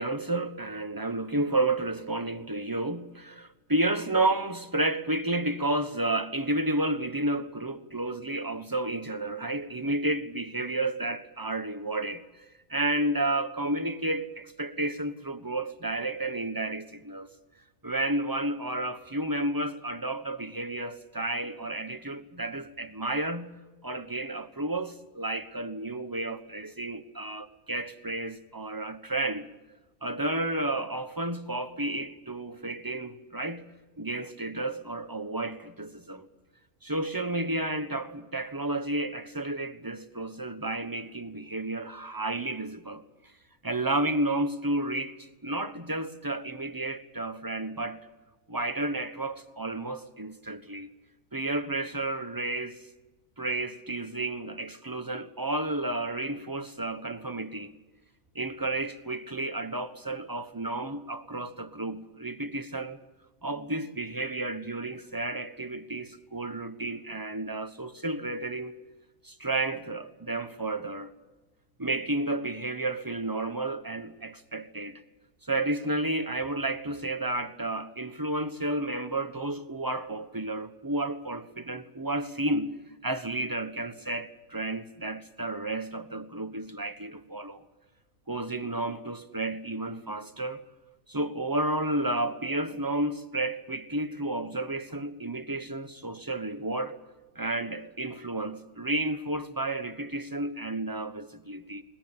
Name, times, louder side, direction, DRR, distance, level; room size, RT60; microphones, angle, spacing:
voice 1, 0.0-12.4 12.7-17.3 17.8-23.5 23.8-29.5 30.0-33.6 34.0-36.3 36.8-43.0 43.6-48.1 48.5-50.9 51.3-52.8 53.4-57.7 58.3-63.0 63.4-68.7 69.2-71.1 71.8-75.0 75.4-82.8 83.0-87.6 88.3-90.6 91.1-97.0 97.3-101.8, right 2 dB, 15° right, 1.1 m, -31 dB
22.0 x 20.5 x 8.8 m
omnidirectional pair, 1.5 m